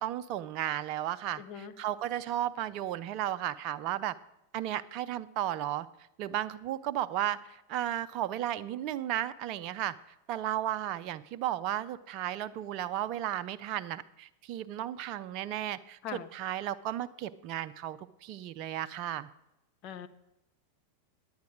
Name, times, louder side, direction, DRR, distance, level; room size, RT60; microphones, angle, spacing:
voice 1, 0.0-4.2 4.5-5.9 6.2-10.0 10.3-16.0 16.3-19.3, right 12 dB, 40° right, 12 dB, 0.4 m, -34 dB
voice 2, 1.4-1.7 16.0-16.3 19.8-20.1, left 8 dB, 40° left, 10 dB, 0.7 m, -41 dB
10.5 x 8.7 x 6.1 m, 0.90 s
figure-of-eight pair, 90°, 0 cm